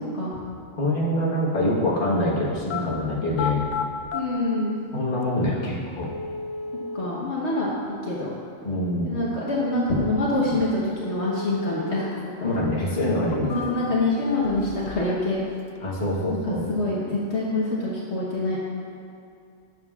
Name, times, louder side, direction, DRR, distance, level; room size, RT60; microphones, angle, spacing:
voice 1, 0.8-3.6 4.9-6.1 8.6-9.1 12.4-13.7 15.8-16.6, left 1 dB, 40° left, -5 dB, 1.4 m, -25 dB
sound 1, 2.5-2.8 3.3-4.2 5.2-5.3 6.0-7.1 11.0-12.1 12.4-12.5 13.1-14.0 14.4-15.2 15.4-16.0, left 4 dB, 80° left, 0.4 m, -33 dB
voice 2, 4.1-4.8 6.9-7.7 8.0-8.3 9.0-12.3 13.4-15.4 16.3-18.6, left 2 dB, 60° left, -6 dB, 1.3 m, -25 dB
12.5 x 7.8 x 2.4 m, 2.4 s
omnidirectional pair, 1.3 m